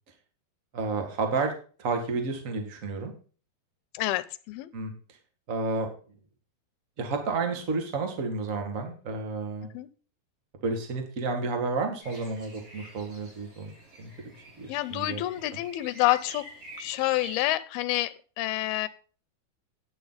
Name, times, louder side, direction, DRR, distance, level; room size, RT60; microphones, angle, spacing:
voice 1, 0.7-1.5 1.8-3.1 4.7-4.9 5.5-5.9 7.0-9.7 10.6-13.7 14.0-14.1 14.3-15.2 15.5-15.6, right 3 dB, 30° right, 4 dB, 1.7 m, -31 dB
voice 2, 3.9-4.7 9.7-9.9 14.7-16.4 16.8-18.9, left 17 dB, 80° left, 14 dB, 2.6 m, -28 dB
sound 1, 12.0-17.4, equal, 60° right, 7.5 m, -47 dB
11.5 x 9.1 x 4.1 m, 0.39 s
omnidirectional pair, 4.4 m